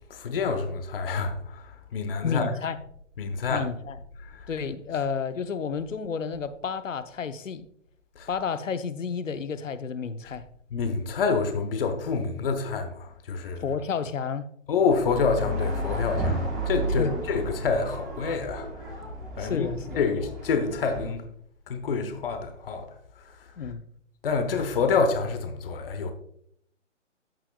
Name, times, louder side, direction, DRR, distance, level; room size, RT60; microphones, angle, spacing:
voice 1, 0.1-2.5 3.2-3.7 4.2-4.5 8.1-8.3 10.7-13.7 14.7-19.0 19.4-19.7 20.0-21.2 21.7-23.7 24.2-26.1, left 5 dB, 50° left, 1.2 m, -28 dB
voice 2, 2.2-2.8 3.5-4.0 4.5-7.7 8.3-10.4 13.6-14.5 17.0-17.2 19.4-20.0 23.6-23.8, left 6 dB, 90° left, 0.8 m, -31 dB
sound 1, 14.8-21.1, right 1 dB, ahead, 0.5 m, -32 dB
14.0 x 6.0 x 2.3 m
hypercardioid pair, 150°, 37 cm